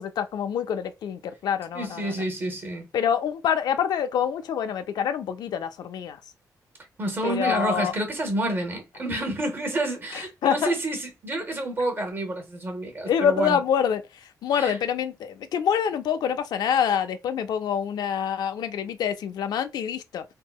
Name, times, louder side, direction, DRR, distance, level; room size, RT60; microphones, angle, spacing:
voice 1, 0.0-2.1 2.9-6.2 7.2-7.9 10.1-10.7 13.1-14.0 14.4-20.2, left 8 dB, 85° left, 0.4 m, -26 dB
voice 2, 1.7-2.8 7.0-13.6 14.6-14.8, right 1 dB, 35° right, 0.9 m, -29 dB
3.6 x 2.1 x 2.3 m
wide cardioid pair, 145°, 7 cm